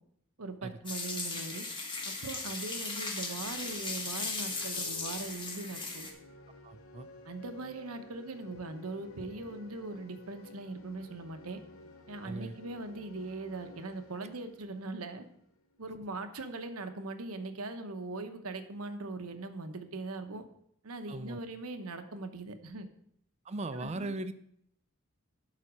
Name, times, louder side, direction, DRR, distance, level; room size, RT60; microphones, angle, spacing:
voice 1, 0.4-1.6 2.0-6.1 7.2-11.6 12.1-15.2 15.8-20.4 20.8-22.9 23.7-24.1, right 2 dB, 85° right, 8 dB, 1.0 m, -40 dB
sound 1, 0.9-6.1, left 3 dB, 25° left, 1.2 m, -37 dB
sound 2, 3.1-15.8, left 2 dB, 70° left, 1.0 m, -54 dB
voice 2, 6.6-7.1 12.2-12.6 21.1-21.4 23.4-24.3, right 2 dB, 30° right, 12 dB, 0.5 m, -38 dB
11.0 x 4.2 x 6.1 m, 0.70 s
head